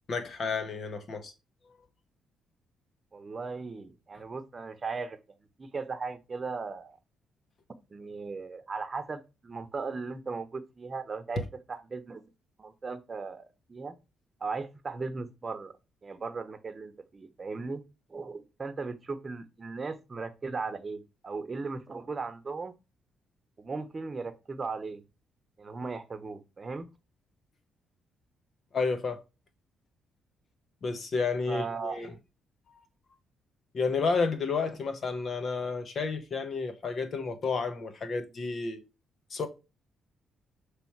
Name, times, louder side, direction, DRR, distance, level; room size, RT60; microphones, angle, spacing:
voice 1, 0.1-1.3 28.7-29.2 30.8-32.1 33.7-38.8 39.3-39.5, left 4 dB, 50° left, 1.3 m, -31 dB
voice 2, 3.1-5.2 5.6-7.0 7.9-11.4 11.7-12.2 12.6-14.0 14.4-15.7 16.0-17.8 18.1-22.7 23.6-25.0 25.6-26.9 31.5-32.1, right 4 dB, 30° right, 1.0 m, -37 dB
6.9 x 3.4 x 4.6 m
cardioid pair, 90°, 0 cm